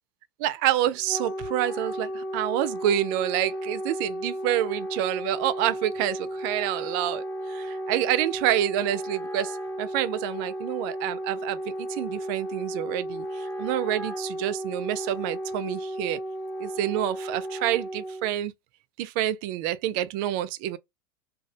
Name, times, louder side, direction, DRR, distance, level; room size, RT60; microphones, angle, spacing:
voice 1, 0.4-7.2 7.5-11.6 11.9-16.2 16.6-18.5 19.0-20.8, right 12 dB, 60° right, 0.4 m, -28 dB
Wind instrument woodwind instrument, 0.8-18.3, right 1 dB, 10° left, 0.9 m, -34 dB
2.3 x 2.0 x 2.7 m
supercardioid pair, 120°, 12 cm